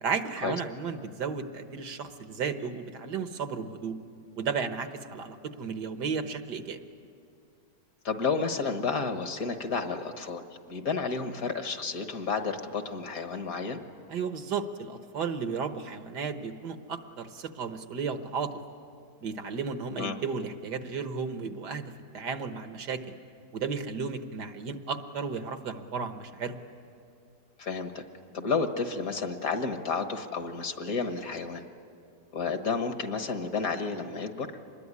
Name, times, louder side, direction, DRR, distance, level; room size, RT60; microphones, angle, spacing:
voice 1, 0.0-3.9 4.4-6.8 14.1-18.5 19.2-23.0 23.5-26.6, right 5 dB, 75° right, 8 dB, 1.8 m, -34 dB
voice 2, 8.0-13.8 20.0-20.2 27.6-28.0 28.3-31.6 32.3-34.5, left 5 dB, 60° left, 7 dB, 1.8 m, -31 dB
25.5 x 21.0 x 9.7 m, 2.4 s
omnidirectional pair, 1.8 m